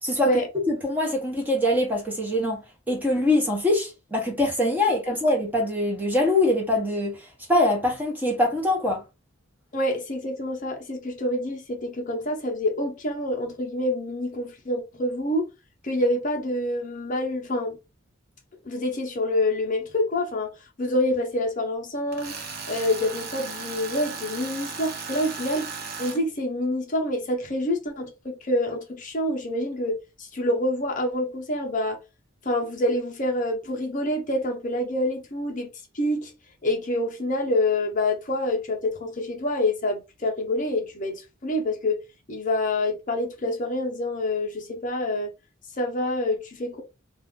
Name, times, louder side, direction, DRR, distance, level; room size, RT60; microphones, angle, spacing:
voice 1, 0.7-2.6 2.9-9.0, left 1 dB, 10° right, 0.8 m, -23 dB
voice 2, 9.7-15.5 15.8-17.8 18.7-20.5 20.8-22.3 22.7-32.0 32.4-35.7 35.9-36.3 36.6-42.0 42.3-45.3 45.8-46.8, left 1 dB, 40° left, 0.7 m, -27 dB
Tools, 22.1-26.2, right 5 dB, 45° right, 0.7 m, -36 dB
2.5 x 2.4 x 3.5 m
head